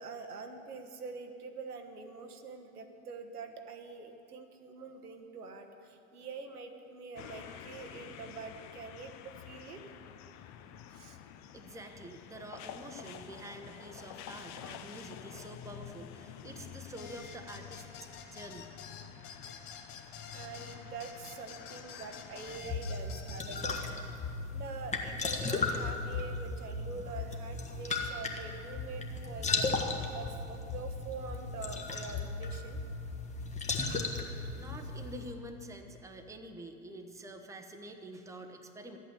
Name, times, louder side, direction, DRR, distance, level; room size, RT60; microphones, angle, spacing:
voice 1, 0.0-10.0 10.9-11.2 16.4-16.5 20.3-24.1 24.5-29.8 30.1-32.8, right 4 dB, 85° right, 5 dB, 1.2 m, -45 dB
sound 1, 7.2-22.6, left 9 dB, 40° left, 0.7 m, -49 dB
voice 2, 11.5-17.8 18.3-18.7 34.5-39.0, right 1 dB, 5° right, 5 dB, 0.9 m, -47 dB
sound 2, 17.0-23.9, left 6 dB, 55° left, 1.6 m, -49 dB
sound 3, 22.5-35.3, left 3 dB, 15° left, 1.3 m, -36 dB
12.5 x 8.6 x 6.9 m, 2.7 s
hypercardioid pair, 90°, 44 cm